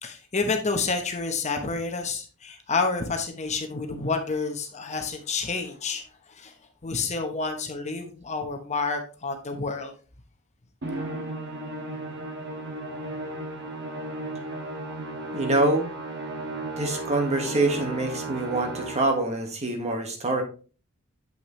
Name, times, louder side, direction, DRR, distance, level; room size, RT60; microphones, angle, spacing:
voice 1, 0.0-6.0 6.3-6.5 6.8-9.9, left 4 dB, 35° left, 0.9 m, -29 dB
Musical instrument, 10.8-19.3, right 2 dB, 55° right, 1.7 m, -34 dB
voice 2, 15.3-15.9 16.8-20.4, right 2 dB, 30° right, 1.5 m, -25 dB
7.9 x 6.0 x 3.1 m
head